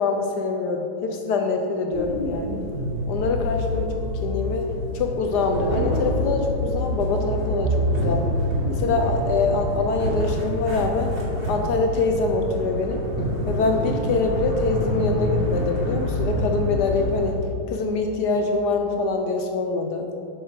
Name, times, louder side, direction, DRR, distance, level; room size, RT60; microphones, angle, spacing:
voice 1, 0.0-2.6 3.1-4.7 4.9-8.3 8.7-11.1 11.5-13.0 13.5-20.1, left 4 dB, 75° left, 4 dB, 0.9 m, -24 dB
sound 1, 1.9-17.3, equal, 30° right, 1.6 m, -26 dB
7.6 x 6.2 x 5.0 m, 2.6 s
omnidirectional pair, 2.4 m